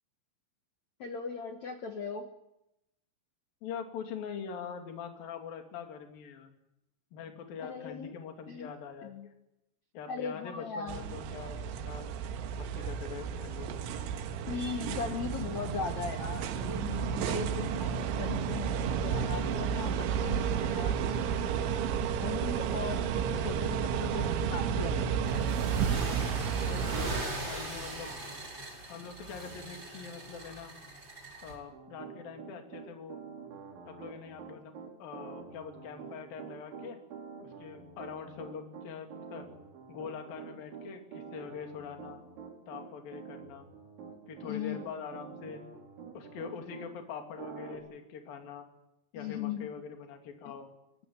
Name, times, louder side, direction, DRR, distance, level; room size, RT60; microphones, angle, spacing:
voice 1, 1.0-2.3 7.6-8.1 8.5-8.7 9.0-9.3 10.1-11.2 14.5-21.5 22.2-25.0 44.4-44.8 49.1-49.7 50.4-50.5, left 6 dB, 70° left, 6 dB, 1.7 m, -39 dB
voice 2, 3.6-6.5 7.1-9.3 9.9-12.2 12.5-13.8 26.6-28.1 28.9-30.7 31.4-33.2 33.9-37.0 37.4-39.4 39.9-42.2 42.7-43.7 44.3-45.6 46.1-48.7 49.1-50.7, left 6 dB, 50° left, 4 dB, 4.1 m, -43 dB
sound 1, 10.9-27.2, right 7 dB, 80° right, 3.8 m, -32 dB
sound 2, 25.2-31.5, right 2 dB, 25° right, 5.5 m, -40 dB
Piano, 31.7-46.9 47.4-47.8, right 6 dB, 65° right, 6.9 m, -46 dB
24.5 x 20.5 x 9.7 m, 0.87 s
omnidirectional pair, 5.7 m